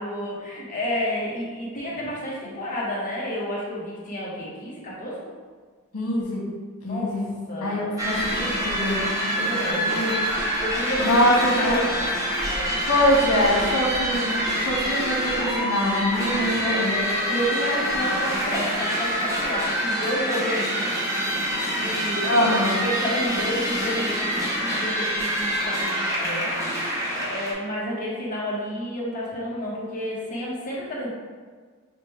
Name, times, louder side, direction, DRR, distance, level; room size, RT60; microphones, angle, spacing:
voice 1, 0.0-5.3 6.8-7.2 7.5-7.9 9.3-10.1 10.5-11.2 11.5-12.1 12.4-12.8 16.6-20.9 21.7-22.5 22.8-24.3 24.6-26.5 27.1-31.1, equal, 35° left, -5 dB, 0.9 m, -30 dB
voice 2, 5.9-6.4 6.8-7.3 7.6-9.3 9.7-10.2 11.0-11.8 12.9-17.0 17.3-17.4 22.2-22.8, left 1 dB, 85° left, -4 dB, 1.2 m, -24 dB
sound 1, 8.0-27.5, equal, 15° right, 0.5 m, -26 dB
5.7 x 2.2 x 3.1 m, 1.5 s
head